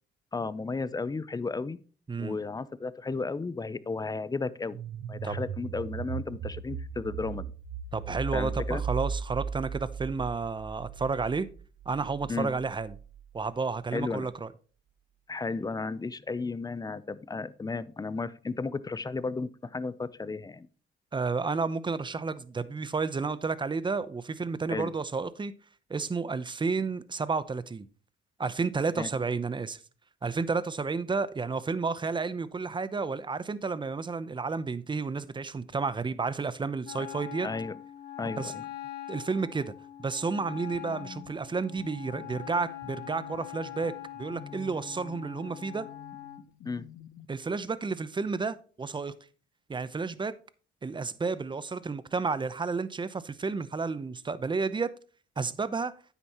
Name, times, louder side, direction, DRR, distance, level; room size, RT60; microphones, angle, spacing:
voice 1, 0.3-1.8 2.2-4.8 5.1-7.5 8.3-8.8 12.3-12.5 13.9-14.3 15.3-20.7 24.7-24.9 29.0-29.1 37.4-37.8 38.2-38.6 46.6-46.9, left 4 dB, 20° left, 0.6 m, -34 dB
sound 1, 4.7-13.4, right 6 dB, 65° right, 0.8 m, -37 dB
voice 2, 7.9-11.5 11.9-12.9 13.3-14.5 21.1-25.5 25.9-27.9 28.4-29.8 30.2-37.5 38.2-38.5 39.1-39.7 40.0-43.9 44.2-45.9 47.3-49.1 49.7-50.3 50.8-54.9 55.4-55.9, right 4 dB, 25° right, 0.7 m, -31 dB
Wind instrument woodwind instrument, 36.8-46.4, left 12 dB, 55° left, 2.1 m, -43 dB
sound 2, 40.4-47.3, left 8 dB, 85° left, 0.9 m, -50 dB
9.6 x 8.1 x 3.0 m
cardioid pair, 90°, 20 cm